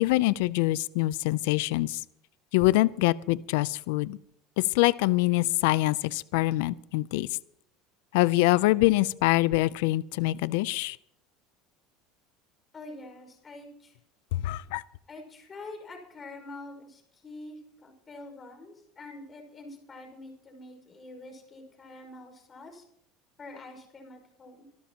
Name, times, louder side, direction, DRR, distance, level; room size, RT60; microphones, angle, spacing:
voice 1, 0.0-2.0 2.5-4.2 4.6-7.3 8.1-11.0 14.3-14.8, left 19 dB, 80° left, 19 dB, 0.5 m, -24 dB
voice 2, 12.7-14.0 15.1-22.8 23.4-24.7, left 2 dB, 25° left, 3 dB, 5.5 m, -46 dB
25.0 x 12.5 x 3.0 m, 0.71 s
supercardioid pair, 125°, 0 cm